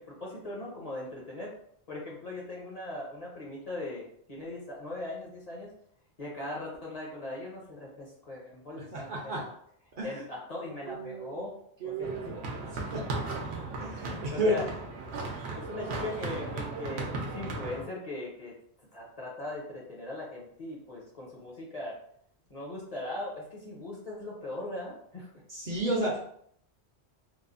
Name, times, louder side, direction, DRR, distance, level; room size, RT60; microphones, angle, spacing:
voice 1, 0.0-1.5 1.9-5.7 6.2-9.4 10.0-11.5 11.8-12.3 12.8-13.1 14.0-14.6 15.5-18.5 18.9-21.9 22.5-25.3, left 2 dB, 45° left, -4 dB, 0.6 m, -39 dB
voice 2, 8.7-9.4 10.0-10.2 10.8-11.5 11.8-13.2 13.8-14.6 25.5-26.2, right 1 dB, 55° right, -3 dB, 0.7 m, -32 dB
sound 1, 12.0-17.8, right 3 dB, 85° right, 0.9 m, -36 dB
3.0 x 2.0 x 2.4 m, 0.67 s
omnidirectional pair, 1.1 m